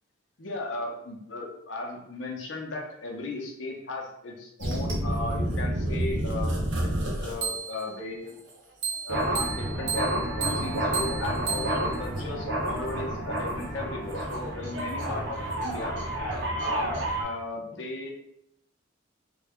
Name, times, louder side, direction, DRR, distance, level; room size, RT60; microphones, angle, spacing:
voice 1, 0.4-6.9 7.2-8.4 9.1-16.0 16.6-18.1, left 2 dB, 70° left, 0 dB, 0.8 m, -36 dB
sound 1, 4.6-7.9 8.8-17.2, right 1 dB, 65° right, 0.8 m, -29 dB
3.3 x 2.3 x 3.5 m, 0.75 s
head